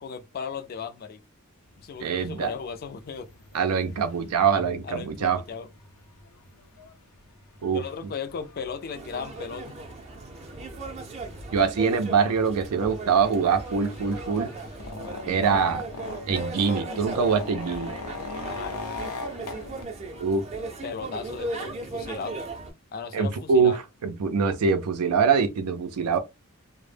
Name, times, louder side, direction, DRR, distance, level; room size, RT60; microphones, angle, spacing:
voice 1, 0.0-1.2 1.8-3.3 4.8-5.7 7.7-9.8 18.4-18.9 20.6-22.4 22.9-23.8, left 6 dB, 45° left, 0.4 m, -36 dB
sound 1, 1.8-1.9 2.2-19.8, left 3 dB, 85° left, 0.6 m, -41 dB
voice 2, 2.0-2.5 3.5-5.4 7.6-7.8 11.5-14.5 15.2-15.9 16.3-17.9 20.2-20.5 23.1-26.2, right 5 dB, 85° right, 0.4 m, -24 dB
sound 2, 8.9-22.7, right 2 dB, 30° right, 0.5 m, -37 dB
2.0 x 2.0 x 3.2 m
head